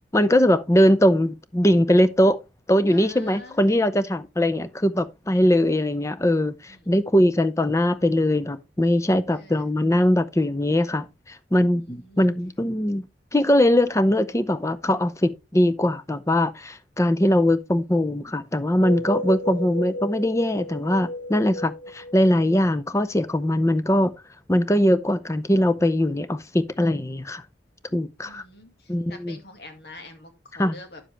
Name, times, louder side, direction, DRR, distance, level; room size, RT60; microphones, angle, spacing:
voice 1, 0.1-2.4 2.7-13.0 13.3-24.1 24.5-27.4 27.9-28.4 28.9-29.4 30.6-30.8, left 1 dB, 15° left, 0.6 m, -21 dB
voice 2, 2.9-3.8 6.7-7.0 9.3-9.7 11.8-12.3 17.2-17.6 19.5-19.6 28.2-31.0, left 2 dB, 60° left, 2.1 m, -45 dB
sound 1, 18.6-23.2, left 1 dB, 75° left, 2.7 m, -33 dB
10.0 x 7.2 x 3.3 m
head